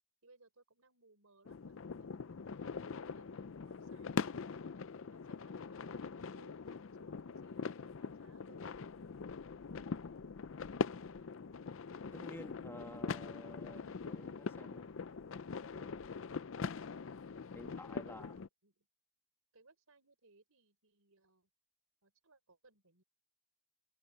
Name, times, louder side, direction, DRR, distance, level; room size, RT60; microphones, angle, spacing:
voice 1, 0.2-2.8 3.1-4.7 5.0-9.2 18.0-18.9 19.5-21.5 22.0-23.0, right 3 dB, 75° right, 4.3 m, -67 dB
sound 1, 1.4-18.5, left 5 dB, 60° left, 0.5 m, -42 dB
voice 2, 12.1-14.9 15.7-16.1 17.5-18.3, left 1 dB, 10° left, 1.9 m, -52 dB
head